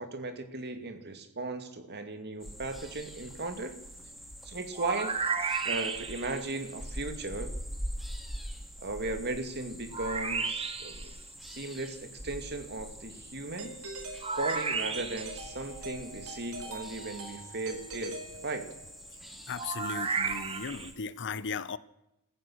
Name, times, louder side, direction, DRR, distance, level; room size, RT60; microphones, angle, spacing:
voice 1, 0.0-3.8 4.4-5.2 5.6-7.5 8.8-11.1 11.4-13.8 14.4-18.7, right 2 dB, 50° right, 2.5 m, -36 dB
sound 1, 2.4-20.9, equal, ahead, 3.0 m, -44 dB
sound 2, 4.7-6.4 9.9-11.1 14.2-15.4 19.6-20.9, right 5 dB, 25° right, 1.6 m, -33 dB
Doorbell, 13.6-19.0, right 2 dB, 70° right, 4.5 m, -43 dB
voice 2, 19.5-21.8, left 5 dB, 55° left, 0.8 m, -36 dB
27.0 x 15.0 x 6.5 m
head